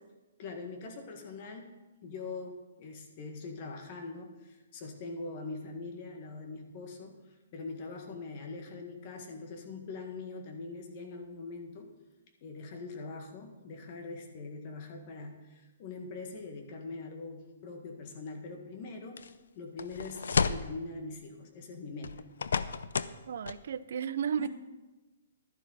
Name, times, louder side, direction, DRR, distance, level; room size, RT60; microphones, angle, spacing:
voice 1, 0.4-1.7 2.0-7.2 7.5-11.9 12.4-19.2 19.5-22.2 24.4-24.5, left 3 dB, 40° left, 4 dB, 1.7 m, -42 dB
sound 1, 19.2-19.3 19.8-20.7 22.0-23.2 23.5-23.6, left 6 dB, 75° left, 0.5 m, -31 dB
voice 2, 23.2-24.5, right 8 dB, 60° right, 16 dB, 0.5 m, -33 dB
12.0 x 11.0 x 4.1 m, 1.1 s
hypercardioid pair, 155°, 0 cm